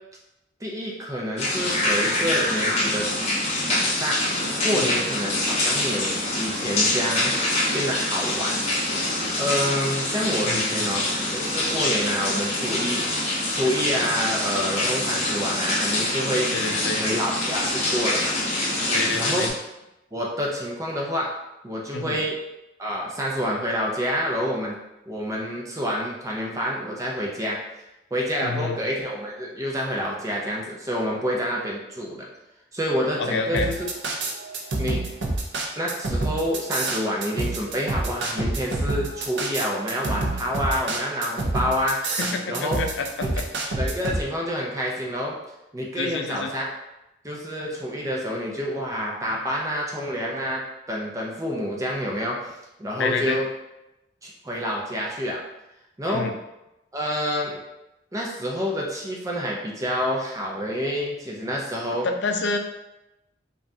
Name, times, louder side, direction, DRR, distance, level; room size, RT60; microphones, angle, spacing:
voice 1, 0.6-3.1 3.7-4.2 4.6-8.8 9.4-13.0 13.5-16.5 17.0-18.3 19.1-19.5 20.1-21.3 21.6-22.4 22.8-24.8 25.1-27.6 28.1-32.3 32.7-33.9 34.8-35.0 35.8-42.0 42.5-42.8 43.3-43.4 43.8-45.4 45.7-46.7 47.2-50.6 50.9-52.5 52.8-53.5 54.2-55.4 56.0-56.3 56.9-57.6 58.1-62.1, equal, 15° right, -2 dB, 0.5 m, -28 dB
sound 1, 1.4-19.5, left 1 dB, 35° left, 1.0 m, -25 dB
voice 2, 10.4-10.8 16.5-17.0 18.9-19.5 21.9-22.2 28.4-28.8 33.2-33.7 42.2-43.5 46.0-46.5 53.0-53.4 56.1-56.3 62.0-62.6, left 4 dB, 70° left, 5 dB, 0.4 m, -28 dB
sound 2, 33.5-44.2, right 2 dB, 70° right, 0.6 m, -27 dB
5.2 x 2.4 x 2.7 m, 0.94 s
head